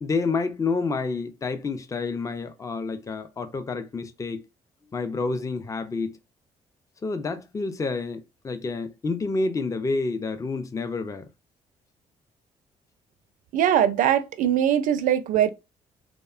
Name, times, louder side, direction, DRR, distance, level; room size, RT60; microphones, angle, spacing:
voice 1, 0.0-4.4 4.9-6.2 7.0-11.2, left 3 dB, 20° left, 0.4 m, -29 dB
voice 2, 13.5-15.5, right 10 dB, 65° right, 0.4 m, -21 dB
2.8 x 2.1 x 2.4 m
supercardioid pair, 65°, 14 cm